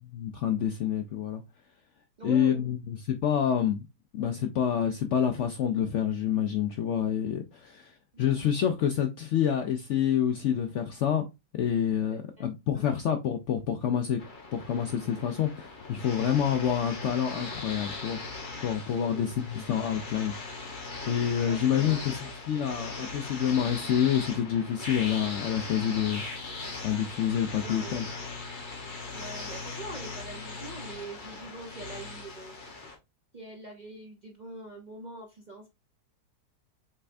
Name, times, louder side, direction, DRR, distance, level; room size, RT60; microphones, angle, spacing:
voice 1, 0.1-1.4 2.2-3.9 4.1-11.2 11.6-14.2 14.5-18.2 18.6-20.7 21.1-22.2 22.5-26.5 26.8-28.0, left 9 dB, 80° left, 0.6 m, -28 dB
voice 2, 2.2-2.7 8.1-8.3 12.1-12.5 12.7-12.9 18.9-19.3 21.4-22.3 27.6-28.0 29.1-32.5 33.3-35.7, right 2 dB, 70° right, 0.4 m, -43 dB
sound 1, 14.2-32.9, left 3 dB, 35° left, 0.9 m, -39 dB
5.6 x 3.3 x 2.5 m
omnidirectional pair, 1.8 m